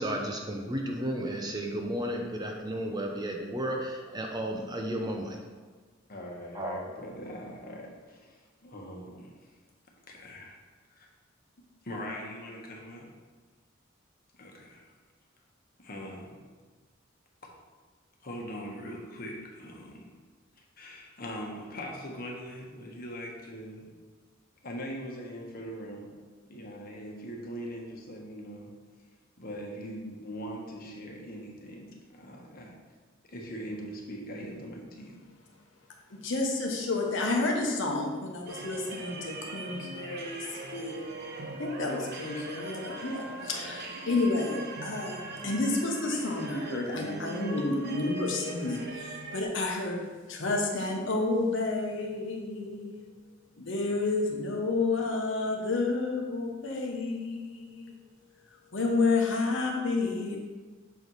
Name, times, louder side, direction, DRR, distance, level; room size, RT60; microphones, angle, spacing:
voice 1, 0.0-5.4 6.5-6.8, right 1 dB, 20° right, 2 dB, 0.6 m, -33 dB
voice 2, 6.1-9.3 10.1-10.6 10.9-11.1 11.8-13.1 14.3-14.8 15.8-16.4 17.4-17.5 18.2-20.1 20.6-23.9 24.6-26.2 26.4-28.7 29.4-32.8 33.2-35.2, equal, 50° left, -1 dB, 1.2 m, -41 dB
voice 3, 36.2-41.0 41.6-52.9 53.6-58.0 58.7-60.4, left 3 dB, 65° left, 0 dB, 1.0 m, -30 dB
sound 1, 38.5-49.4, right 2 dB, 55° right, 0.8 m, -41 dB
7.0 x 4.6 x 4.0 m, 1.4 s
head